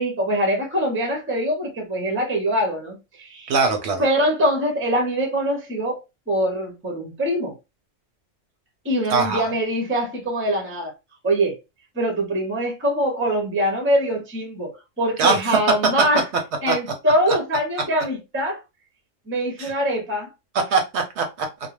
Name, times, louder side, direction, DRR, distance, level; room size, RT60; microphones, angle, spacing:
voice 1, 0.0-3.5 4.0-6.0 6.3-7.6 8.8-10.9 11.2-11.6 11.9-16.2 16.6-18.6 19.3-20.3, equal, 15° right, 0.5 m, -23 dB
voice 2, 3.5-4.0 9.1-9.4 15.2-15.4 16.7-16.8 19.6-19.7 20.7-21.5, right 4 dB, 65° right, 0.8 m, -21 dB
2.4 x 2.1 x 3.0 m
omnidirectional pair, 1.3 m